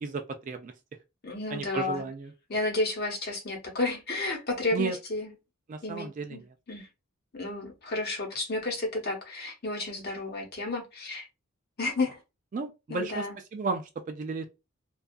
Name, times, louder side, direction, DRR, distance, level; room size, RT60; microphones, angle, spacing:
voice 1, 0.0-0.7 1.5-2.3 4.7-5.0 5.7-6.4 12.5-14.5, right 4 dB, 35° right, 0.3 m, -33 dB
voice 2, 1.2-2.0 2.5-5.3 5.8-6.4 6.7-6.9 7.3-11.2 11.8-12.2 12.9-13.3, left 2 dB, 45° left, 0.9 m, -32 dB
2.6 x 2.3 x 2.2 m
head